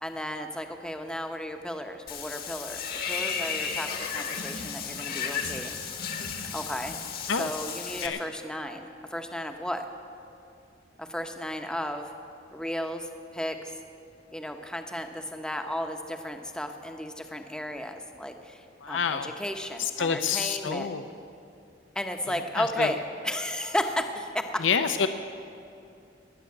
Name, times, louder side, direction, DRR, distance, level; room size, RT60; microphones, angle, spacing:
voice 1, 0.0-5.8 6.5-6.9 7.3-9.9 11.0-12.1 12.5-13.8 14.3-20.9 21.9-24.6, left 1 dB, 5° left, 5 dB, 0.8 m, -34 dB
Water / Bathtub (filling or washing), 2.1-8.1, left 6 dB, 55° left, 1.4 m, -34 dB
voice 2, 18.8-19.3 19.8-21.0 22.3-22.9 24.6-25.1, left 6 dB, 80° left, 9 dB, 0.6 m, -28 dB
19.0 x 7.0 x 9.6 m, 2.6 s
head